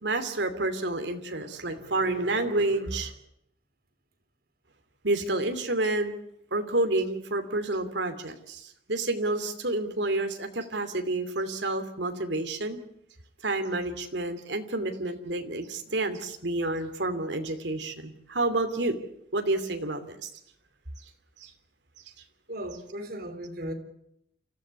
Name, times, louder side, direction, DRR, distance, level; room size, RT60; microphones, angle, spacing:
voice 1, 0.0-3.1 5.0-6.1 6.5-12.8 13.4-19.0 19.3-20.3 21.4-21.5, right 2 dB, 75° right, 7 dB, 2.7 m, -29 dB
voice 2, 22.5-23.7, equal, 55° right, 7 dB, 3.7 m, -36 dB
29.0 x 14.5 x 8.1 m, 0.73 s
head